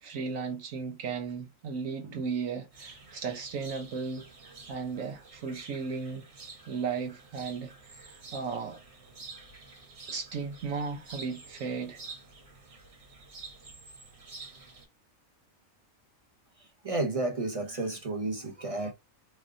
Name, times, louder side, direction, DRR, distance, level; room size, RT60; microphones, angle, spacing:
voice 1, 0.0-6.3 6.7-8.8 10.1-12.0, right 5 dB, 75° right, 1.2 m, -35 dB
sound 1, 2.7-14.9, right 3 dB, 55° right, 1.4 m, -49 dB
voice 2, 16.6-18.9, right 2 dB, 40° right, 0.5 m, -32 dB
3.6 x 3.1 x 2.6 m
omnidirectional pair, 1.4 m